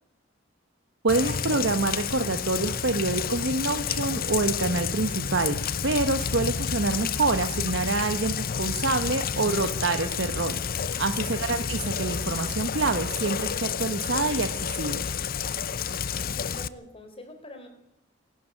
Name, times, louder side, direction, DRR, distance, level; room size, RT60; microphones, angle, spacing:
voice 1, 1.0-5.6 5.8-15.1, right 3 dB, 70° right, 7 dB, 1.3 m, -27 dB
Rain, 1.1-16.7, left 7 dB, 50° left, 0.7 m, -30 dB
voice 2, 16.2-17.7, left 1 dB, 30° left, 6 dB, 4.4 m, -45 dB
26.0 x 12.0 x 8.7 m, 0.82 s
head